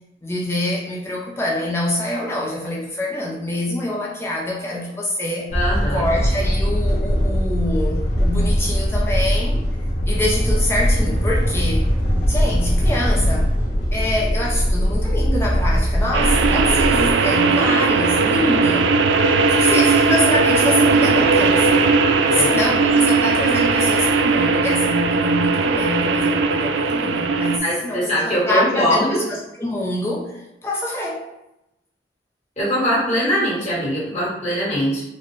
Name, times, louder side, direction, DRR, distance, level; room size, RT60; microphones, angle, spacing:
voice 1, 0.2-5.5 5.9-9.6 10.1-11.9 12.3-13.5 13.9-18.9 19.6-21.7 22.3-31.2, left 1 dB, 15° left, -3 dB, 0.4 m, -25 dB
sound 1, 5.5-17.1, equal, 75° left, 1.1 m, -20 dB
voice 2, 5.5-6.1 18.3-18.7 22.3-22.5 27.6-29.2 32.6-35.0, equal, 40° left, -7 dB, 1.4 m, -22 dB
sound 2, 16.1-27.6, right 4 dB, 90° right, 0.3 m, -18 dB
3.9 x 2.1 x 3.1 m, 0.90 s
head